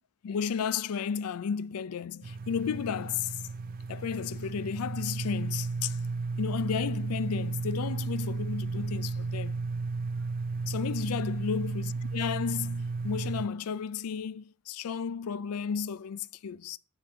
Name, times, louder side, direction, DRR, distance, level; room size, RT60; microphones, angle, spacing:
voice 1, 0.2-3.4 3.9-6.0 6.4-9.6 10.7-16.8, left 7 dB, 80° left, 0.4 m, -33 dB
sound 1, 2.2-13.5, right 4 dB, 40° right, 0.4 m, -34 dB
5.9 x 5.1 x 6.3 m
head